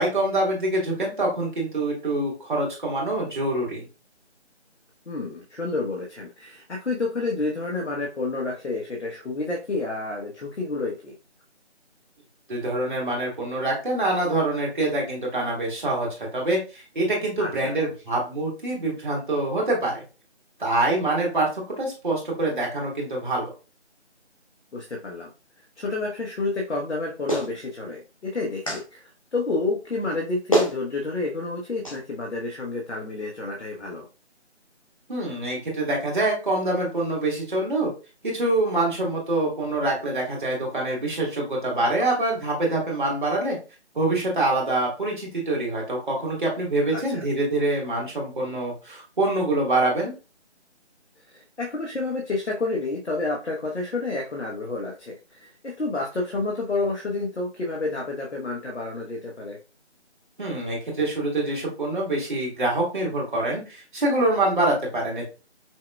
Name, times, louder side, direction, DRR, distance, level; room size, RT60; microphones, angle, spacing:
voice 1, 0.0-3.8 12.5-20.0 20.6-23.5 35.1-37.9 38.2-43.6 44.0-50.1 60.4-65.2, right 2 dB, 45° right, -3 dB, 1.8 m, -25 dB
voice 2, 5.1-11.1 17.4-17.8 24.7-25.3 25.8-34.1 46.9-47.2 51.3-59.6, left 3 dB, 75° left, -1 dB, 1.0 m, -29 dB
Clapping, 27.3-27.5 28.7-28.8 30.1-30.2 30.5-30.8 31.8-32.0, right 1 dB, 30° left, 0.8 m, -23 dB
5.6 x 2.3 x 2.3 m, 0.31 s
figure-of-eight pair, 170°, 35 cm